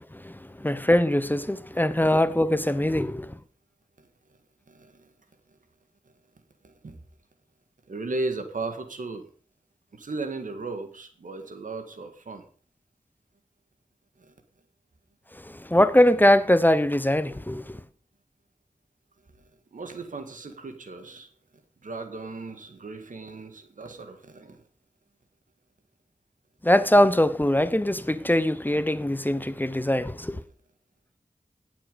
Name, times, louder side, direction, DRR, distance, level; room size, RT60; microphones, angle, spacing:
voice 1, 0.1-3.4 15.5-17.8 26.6-30.4, left 1 dB, 15° left, 0.9 m, -22 dB
voice 2, 4.7-5.1 6.6-7.0 7.9-9.3 9.9-12.4 14.2-14.3 19.7-21.3 21.8-24.6, right 3 dB, 90° right, 1.9 m, -36 dB
17.5 x 7.3 x 5.2 m
cardioid pair, 45°, 13 cm